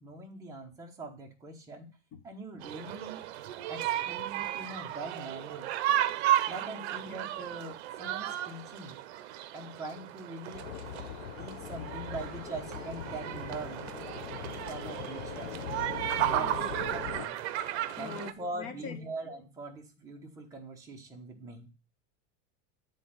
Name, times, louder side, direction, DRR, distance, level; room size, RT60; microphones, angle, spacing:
voice 1, 0.0-1.9 2.2-3.2 3.7-5.7 6.5-9.0 9.5-10.7 11.4-13.8 14.7-15.5 16.3-16.5 16.9-17.4 17.9-21.7, right 2 dB, 10° right, 0 dB, 1.0 m, -42 dB
sound 1, 2.6-18.3, right 12 dB, 60° right, 0.7 m, -34 dB
voice 2, 6.6-7.2 16.4-16.7 18.0-19.0, left 6 dB, 40° left, 5 dB, 1.4 m, -44 dB
sound 2, 10.5-17.3, left 11 dB, 75° left, 0.7 m, -41 dB
8.3 x 3.8 x 5.5 m, 0.33 s
supercardioid pair, 175°, 37 cm